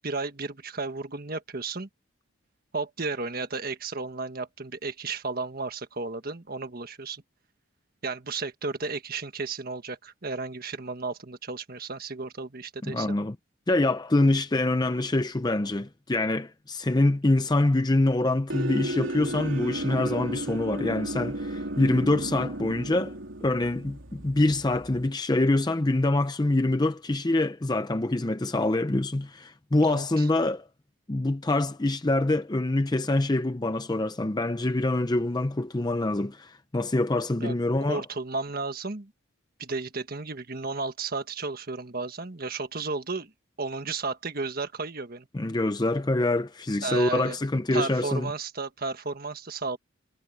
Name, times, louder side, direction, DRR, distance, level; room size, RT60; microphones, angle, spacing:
voice 1, 0.0-1.9 2.7-7.2 8.0-13.2 29.8-30.3 37.4-37.5 37.9-39.1 39.6-43.3 43.6-45.3 46.8-47.4 47.7-49.8, right 3 dB, 45° right, 1.5 m, -33 dB
voice 2, 12.8-13.4 13.7-23.1 23.4-30.7 31.1-38.0 45.3-48.3, left 2 dB, 20° left, 0.5 m, -25 dB
sound 1, 18.5-25.1, right 1 dB, 70° right, 3.5 m, -34 dB
head